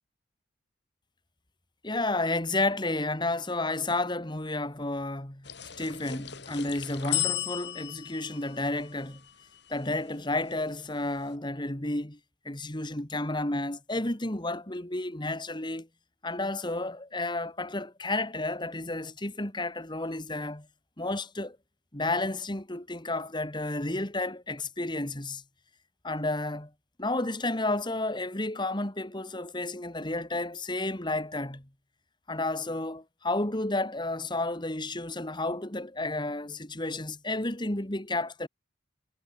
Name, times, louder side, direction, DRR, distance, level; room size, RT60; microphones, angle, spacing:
voice 1, 1.8-5.5 5.8-9.2 9.7-12.2 12.4-15.9 16.2-20.7 21.0-21.6 21.9-25.4 26.0-26.7 27.0-31.7 32.3-38.5, left 2 dB, 25° left, 2.4 m, -31 dB
sound 1, 5.4-10.0, left 13 dB, 60° left, 7.7 m, -35 dB
head